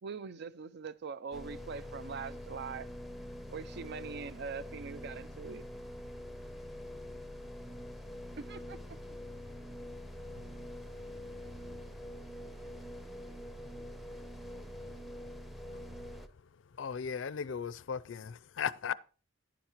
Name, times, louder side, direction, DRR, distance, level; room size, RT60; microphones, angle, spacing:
voice 1, 0.0-2.9 3.5-5.6 8.4-9.2, right 5 dB, 60° right, 0.5 m, -42 dB
sound 1, 1.3-16.3, equal, ahead, 0.6 m, -45 dB
voice 2, 11.4-13.4 13.7-15.2, equal, 35° right, 4.5 m, -66 dB
voice 3, 16.8-18.9, left 7 dB, 70° left, 0.4 m, -36 dB
10.5 x 10.5 x 2.9 m
head